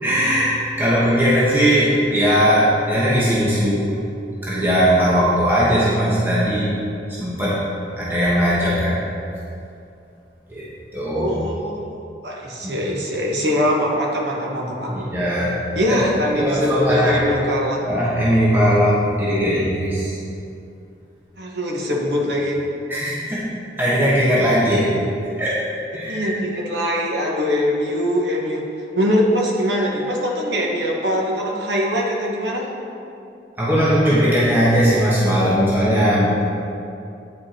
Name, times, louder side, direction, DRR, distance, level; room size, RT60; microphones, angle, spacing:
voice 1, 0.0-3.9 4.4-6.7 7.1-7.6 8.0-9.0 10.5-10.7 10.9-11.3 12.6-12.7 14.9-15.5 15.9-17.4 17.8-20.2 22.9-23.5 23.8-25.0 25.4-25.6 25.9-26.3 33.6-36.5, equal, 10° right, -8 dB, 1.2 m, -19 dB
voice 2, 11.1-12.0 12.2-15.1 15.7-17.8 21.4-22.6 26.0-28.6 28.9-32.7, equal, 80° right, -2 dB, 1.2 m, -22 dB
9.4 x 5.3 x 4.3 m, 2.6 s
head